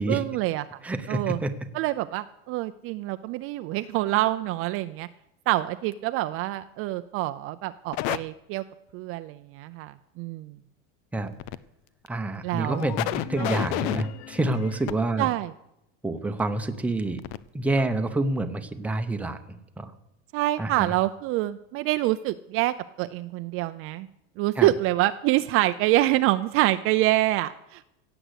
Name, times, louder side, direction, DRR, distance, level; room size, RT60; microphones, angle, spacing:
voice 1, 0.1-0.7 1.1-1.4 1.7-5.1 5.5-8.6 8.9-10.6 12.4-12.8 13.4-13.5 15.2-15.5 20.3-24.1 24.4-27.8, right 16 dB, 40° right, 11 dB, 0.4 m, -26 dB
voice 2, 0.8-1.5 11.1-11.3 12.1-15.3 16.0-17.2 17.5-19.4 19.8-19.9 20.6-20.9 24.6-24.7, right 2 dB, 5° right, 7 dB, 0.7 m, -27 dB
sound 1, 7.9-8.2 11.3-11.6 12.1-12.2 12.6-14.9 16.7-16.8 17.2-17.4 17.8-17.9, left 15 dB, 75° left, 0.7 m, -31 dB
16.5 x 7.9 x 8.1 m, 0.84 s
cardioid pair, 165°, 33 cm